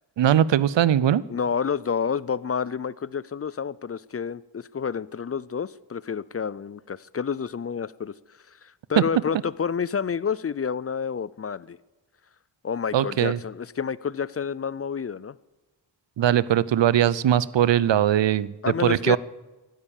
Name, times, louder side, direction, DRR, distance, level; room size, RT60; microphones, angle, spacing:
voice 1, 0.2-1.2 9.0-9.1 12.9-13.4 16.2-18.5 18.8-19.2, right 11 dB, 85° right, 20 dB, 0.6 m, -20 dB
voice 2, 1.3-8.1 8.5-11.8 12.6-15.4 18.6-19.2, left 6 dB, 35° left, 20 dB, 0.4 m, -29 dB
15.0 x 11.5 x 7.2 m, 1.2 s
wide cardioid pair, 65°, 43 cm